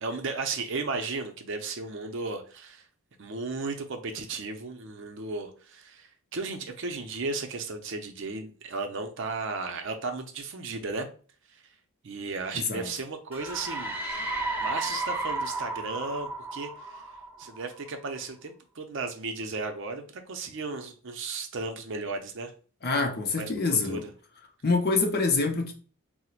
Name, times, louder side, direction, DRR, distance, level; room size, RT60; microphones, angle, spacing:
voice 1, 0.0-2.8 3.2-11.1 12.0-14.3 14.6-17.0 17.4-22.5 23.4-24.0, right 3 dB, 55° right, 0.5 m, -35 dB
voice 2, 12.5-12.9 22.8-24.0 24.6-25.7, left 3 dB, 45° left, 0.5 m, -26 dB
sound 1, 13.3-17.9, right 2 dB, 10° right, 0.7 m, -33 dB
4.3 x 2.1 x 2.4 m
head